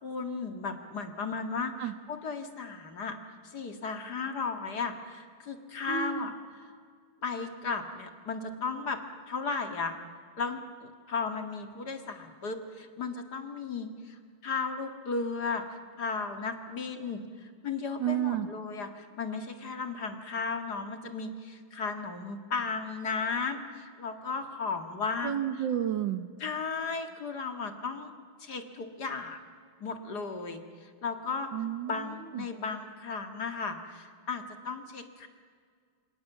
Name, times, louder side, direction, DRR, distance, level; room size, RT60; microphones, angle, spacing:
voice 1, 0.0-1.7 2.1-3.2 3.4-6.3 7.2-9.0 9.3-10.0 10.4-25.4 26.4-28.1 28.4-29.4 29.8-31.5 31.9-35.3, left 4 dB, 50° left, 6 dB, 2.4 m, -35 dB
voice 2, 5.9-6.3 18.0-18.5 25.2-26.3 31.5-32.5, right 10 dB, 65° right, 11 dB, 1.6 m, -31 dB
29.0 x 24.5 x 7.2 m, 2.1 s
omnidirectional pair, 2.3 m